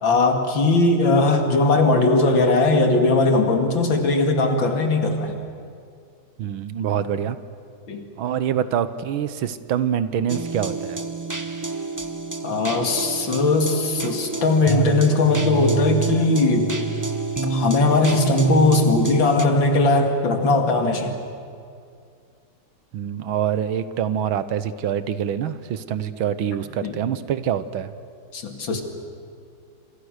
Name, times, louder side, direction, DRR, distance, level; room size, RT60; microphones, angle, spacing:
voice 1, 0.0-5.3 7.9-8.0 12.4-16.7 17.4-21.2 26.8-27.0 28.3-28.8, left 2 dB, 65° left, 4 dB, 3.0 m, -19 dB
voice 2, 6.4-7.4 8.2-11.0 22.9-27.9, right 9 dB, 80° right, 13 dB, 1.7 m, -25 dB
sound 1, 10.3-19.4, right 3 dB, 20° right, 0.5 m, -28 dB
27.5 x 27.0 x 6.6 m, 2.3 s
omnidirectional pair, 2.3 m